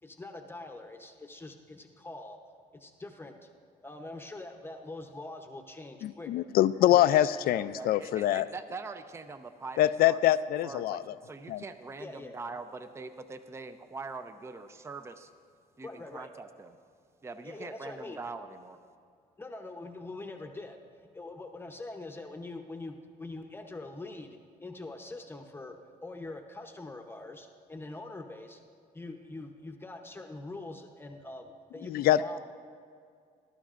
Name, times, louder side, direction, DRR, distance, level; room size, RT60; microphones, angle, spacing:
voice 1, 0.0-2.4 2.7-3.5 3.8-6.3 6.8-7.7 12.0-12.4 15.8-16.3 17.4-18.2 19.4-28.6 28.9-32.4, left 2 dB, 15° left, 4 dB, 0.8 m, -44 dB
voice 2, 6.0-8.5 9.8-11.1 11.5-11.6 31.8-32.4, left 13 dB, 60° left, 15 dB, 0.4 m, -25 dB
voice 3, 7.7-9.8 10.0-10.2 10.6-15.3 15.8-16.8 17.2-18.8, right 4 dB, 15° right, 10 dB, 0.5 m, -43 dB
19.5 x 11.5 x 2.5 m, 2.2 s
cardioid pair, 110°, 17 cm